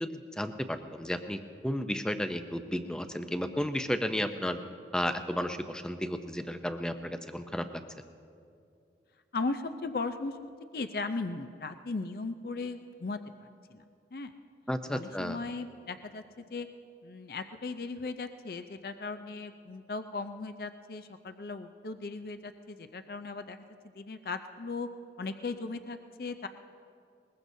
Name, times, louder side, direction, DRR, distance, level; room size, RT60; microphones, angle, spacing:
voice 1, 0.0-4.6 4.9-7.7 14.7-15.4, equal, 5° left, 8 dB, 0.5 m, -33 dB
voice 2, 9.3-13.8 14.1-14.3 14.9-16.7 17.0-23.6 23.9-24.9 25.2-26.5, left 3 dB, 55° left, 8 dB, 0.5 m, -37 dB
21.5 x 21.0 x 2.7 m, 2.4 s
head